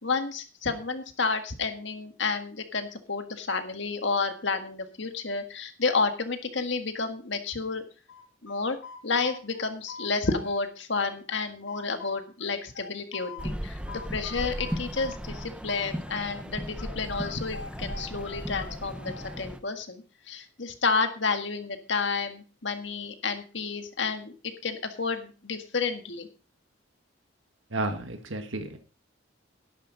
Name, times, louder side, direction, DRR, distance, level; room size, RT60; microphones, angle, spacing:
voice 1, 0.0-7.8 8.4-8.8 9.0-26.3, left 4 dB, 65° left, 7 dB, 1.7 m, -30 dB
sound 1, 8.1-10.6 10.9-13.5 13.9-16.5 16.8-19.4, left 4 dB, 90° left, 2.7 m, -43 dB
sound 2, 13.4-19.6, equal, 5° right, 0.7 m, -36 dB
voice 2, 27.7-28.8, right 2 dB, 75° right, 7 dB, 1.6 m, -32 dB
12.0 x 11.5 x 4.0 m, 0.36 s
head